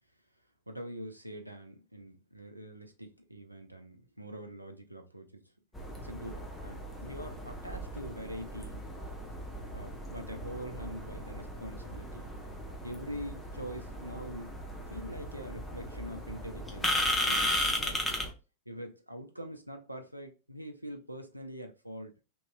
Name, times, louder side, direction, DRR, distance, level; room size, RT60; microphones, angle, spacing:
voice 1, 0.7-5.5 6.0-8.8 9.7-12.3 12.8-14.6 14.9-18.0 18.7-22.1, equal, 85° right, 0.5 m, -44 dB
sound 1, 5.7-18.3, left 1 dB, 10° left, 0.7 m, -36 dB
3.0 x 2.8 x 2.2 m
figure-of-eight pair, 90°, 0 cm